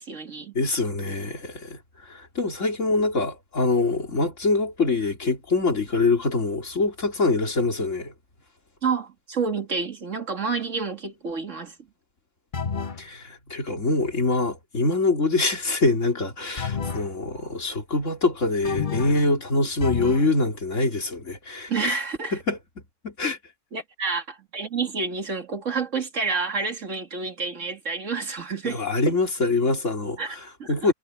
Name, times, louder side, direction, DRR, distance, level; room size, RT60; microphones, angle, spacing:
voice 1, 0.0-0.5 8.8-11.8 21.7-22.4 23.7-28.8 30.2-30.9, right 4 dB, 75° right, 2.5 m, -29 dB
voice 2, 0.5-8.1 13.0-22.0 22.5-22.6 23.0-23.4 28.6-30.2 30.7-30.9, left 3 dB, 75° left, 3.4 m, -24 dB
sound 1, 12.5-13.1 16.6-17.1 18.6-19.3 19.8-20.3, left 6 dB, 40° left, 1.2 m, -30 dB
omnidirectional pair, 1.3 m